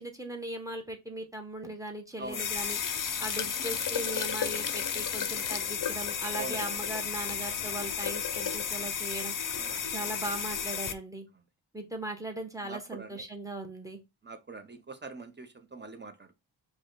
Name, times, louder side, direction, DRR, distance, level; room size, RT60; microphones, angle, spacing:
voice 1, 0.0-2.8 3.2-9.3 9.9-11.3 11.7-14.0, right 1 dB, 5° right, 1.2 m, -39 dB
voice 2, 2.2-2.5 6.4-6.7 9.6-9.9 12.6-13.2 14.2-16.4, right 3 dB, 25° right, 0.8 m, -43 dB
sound 1, 2.3-10.9, left 7 dB, 45° left, 0.6 m, -33 dB
4.8 x 2.3 x 3.9 m
cardioid pair, 60°, 46 cm